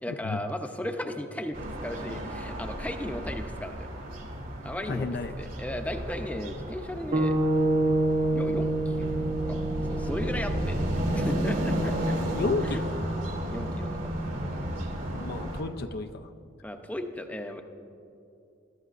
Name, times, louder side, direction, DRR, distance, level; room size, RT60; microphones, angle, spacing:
voice 1, 0.0-3.9 4.6-5.1 5.4-7.4 8.3-9.1 9.4-12.2 12.6-12.8 13.5-14.0 16.6-17.6, left 1 dB, 5° left, 5 dB, 0.6 m, -36 dB
sound 1, 1.5-15.6, equal, 65° right, 2.5 m, -32 dB
voice 2, 4.9-5.3 12.3-12.9 15.1-16.3, left 4 dB, 50° left, 8 dB, 0.4 m, -31 dB
sound 2, 7.1-11.4, right 2 dB, 40° right, 1.0 m, -27 dB
21.0 x 12.5 x 2.5 m, 2.6 s
head